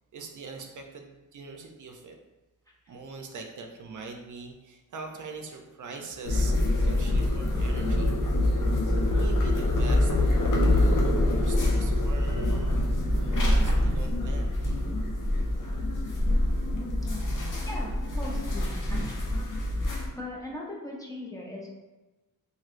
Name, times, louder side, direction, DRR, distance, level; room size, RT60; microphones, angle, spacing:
voice 1, 0.1-2.2 2.9-6.6 6.8-8.2 9.1-10.1 10.6-12.8 13.1-14.6, right 4 dB, 65° right, 3 dB, 0.5 m, -42 dB
sound 1, 6.2-20.1, left 1 dB, 70° left, 0.6 m, -25 dB
voice 2, 17.6-19.4 20.2-21.7, left 1 dB, 10° left, -3 dB, 0.5 m, -39 dB
3.0 x 2.7 x 2.5 m, 1.1 s
wide cardioid pair, 115°, 33 cm